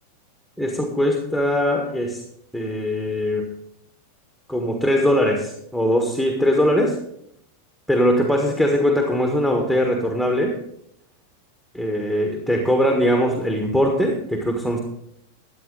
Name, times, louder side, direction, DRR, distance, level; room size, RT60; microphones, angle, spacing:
voice 1, 0.6-2.2 2.5-3.5 4.5-6.9 7.9-10.5 11.7-14.8, equal, ahead, 2 dB, 1.6 m, -21 dB
14.0 x 9.5 x 4.0 m, 0.75 s
figure-of-eight pair, 90°, 0 cm